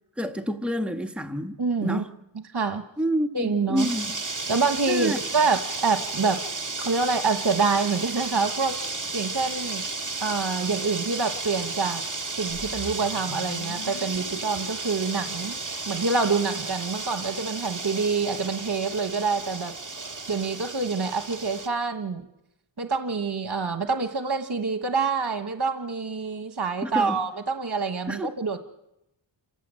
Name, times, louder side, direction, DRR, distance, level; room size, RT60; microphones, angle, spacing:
voice 1, 0.2-2.1 3.0-4.2 4.9-5.2 26.8-27.2 28.1-28.3, equal, ahead, 1.3 m, -28 dB
voice 2, 1.6-2.0 2.5-2.8 3.3-3.9 4.5-6.4 6.8-9.8 10.2-12.0 12.3-15.5 15.8-19.7 20.3-22.2 22.8-28.6, right 4 dB, 55° right, 1.4 m, -26 dB
sound 1, 3.8-21.7, right 3 dB, 40° right, 1.9 m, -33 dB
sound 2, 12.5-16.7, left 5 dB, 90° left, 1.4 m, -44 dB
28.0 x 15.5 x 7.6 m
wide cardioid pair, 60°, 48 cm